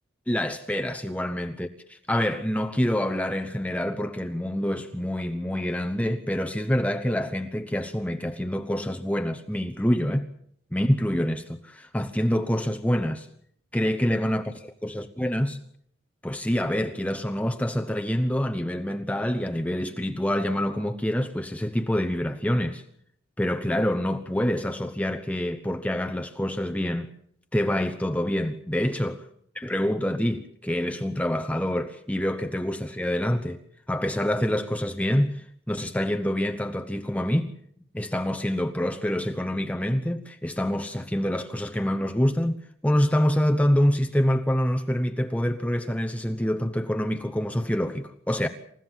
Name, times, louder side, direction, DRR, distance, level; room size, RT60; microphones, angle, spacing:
voice 1, 0.3-10.3 10.7-13.3 13.7-15.6 16.2-22.8 23.4-27.1 27.5-29.2 29.6-33.6 33.9-37.5 37.9-42.6 42.8-48.5, equal, 5° left, 1.0 m, -26 dB
28.5 x 15.5 x 7.5 m
head